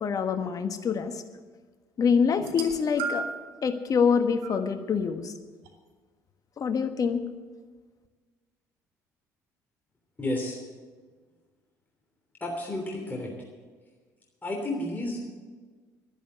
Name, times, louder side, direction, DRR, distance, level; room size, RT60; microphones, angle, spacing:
voice 1, 0.0-1.2 2.0-3.3 3.6-5.3 6.6-7.2, left 6 dB, 45° left, 8 dB, 1.4 m, -25 dB
sound 1, 2.4-3.5 4.4-4.6 5.7-5.8, right 5 dB, 75° right, 1.6 m, -34 dB
voice 2, 10.2-10.6 12.4-13.3 14.4-15.2, left 1 dB, 20° left, -1 dB, 3.2 m, -31 dB
11.5 x 11.0 x 8.1 m, 1.4 s
hypercardioid pair, 55°, 8 cm